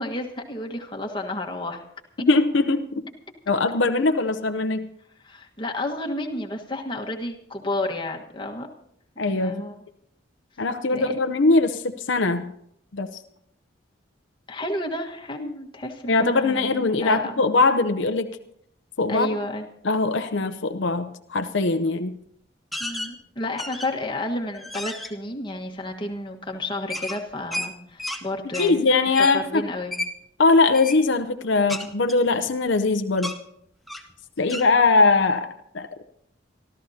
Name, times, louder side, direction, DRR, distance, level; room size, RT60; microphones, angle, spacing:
voice 1, 0.0-1.8 5.2-8.7 9.3-9.7 10.9-11.1 14.5-17.4 19.1-19.7 22.8-28.8 29.2-29.9, left 1 dB, 25° left, 1 dB, 1.4 m, -31 dB
voice 2, 2.2-2.9 3.5-4.9 9.2-9.6 10.6-12.5 12.9-13.2 16.1-18.3 19.0-19.3 19.8-22.1 28.4-29.7 30.4-33.4 34.4-36.0, left 3 dB, 75° left, 8 dB, 0.7 m, -21 dB
sound 1, 22.7-23.1 23.6-24.1 24.5-25.1 26.9-28.2 28.5-28.7 29.1-29.4 29.9-30.1 30.7-31.0 31.7-32.8 33.2-33.4 33.9-34.1 34.5-34.7, left 1 dB, ahead, 0.8 m, -32 dB
27.0 x 13.0 x 2.8 m, 0.71 s
head